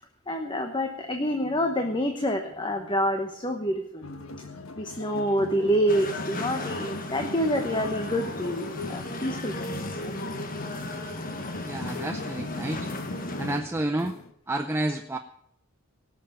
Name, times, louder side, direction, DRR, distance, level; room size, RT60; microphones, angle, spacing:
voice 1, 0.3-4.1 4.8-10.2, equal, 20° left, 5 dB, 1.0 m, -27 dB
sound 1, 4.0-14.3, left 3 dB, 70° left, 1.3 m, -41 dB
sound 2, 5.9-13.6, left 2 dB, 40° left, 1.4 m, -35 dB
voice 2, 11.6-12.9 13.4-14.2 14.5-15.2, right 1 dB, 10° right, 6 dB, 0.5 m, -30 dB
18.0 x 6.8 x 8.8 m, 0.73 s
head